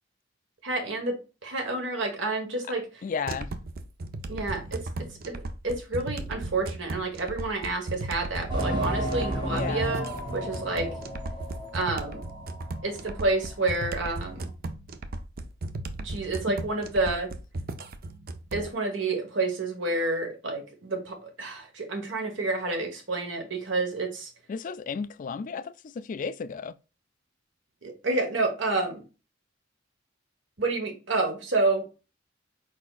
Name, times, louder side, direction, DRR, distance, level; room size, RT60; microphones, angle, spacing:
voice 1, 0.6-1.1 1.4-3.0 4.3-4.8 5.3-10.1 10.3-10.9 11.7-12.2 12.8-14.5 16.0-17.3 18.5-24.3 27.8-29.0 30.6-31.8, right 2 dB, 70° right, 1.4 m, -29 dB
voice 2, 3.0-3.5 9.5-10.0 24.5-26.7, left 5 dB, 45° left, 0.3 m, -33 dB
sound 1, 3.3-18.7, right 2 dB, 50° right, 0.5 m, -36 dB
sound 2, 8.5-12.8 13.1-13.2 13.8-13.9, equal, 25° right, 1.7 m, -32 dB
4.7 x 4.2 x 2.4 m
head